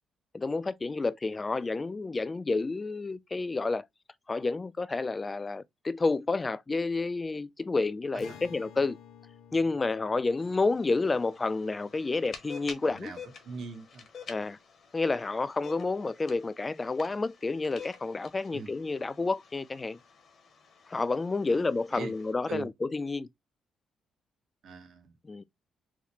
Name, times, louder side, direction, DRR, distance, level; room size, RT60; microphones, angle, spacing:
voice 1, 0.3-3.9 4.3-9.0 9.5-13.1 14.3-14.6 14.9-20.0 20.9-23.3 25.2-25.4, left 3 dB, 25° left, 0.3 m, -30 dB
Acoustic guitar, 8.2-13.7, left 9 dB, 80° left, 0.5 m, -54 dB
sound 1, 10.4-22.3, left 5 dB, 55° left, 0.8 m, -50 dB
voice 2, 12.8-13.2 13.4-14.0 18.5-18.7 21.5-21.6 21.9-22.1 22.5-22.7 24.6-25.1, right 5 dB, 65° right, 1.0 m, -41 dB
4.0 x 2.1 x 2.8 m
cardioid pair, 90°, 0 cm